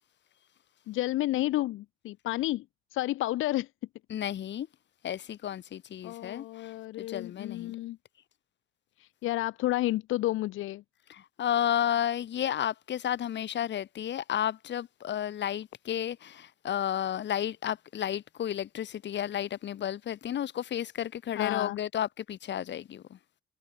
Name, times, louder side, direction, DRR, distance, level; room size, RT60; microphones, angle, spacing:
voice 1, 0.9-2.6 2.9-3.7 6.0-8.0 9.0-10.8 21.3-21.8, left 16 dB, 85° left, 1.0 m, -31 dB
voice 2, 4.1-4.7 5.0-6.4 7.0-7.7 11.1-23.0, left 10 dB, 65° left, 2.3 m, -32 dB
cardioid pair, 90°, 20 cm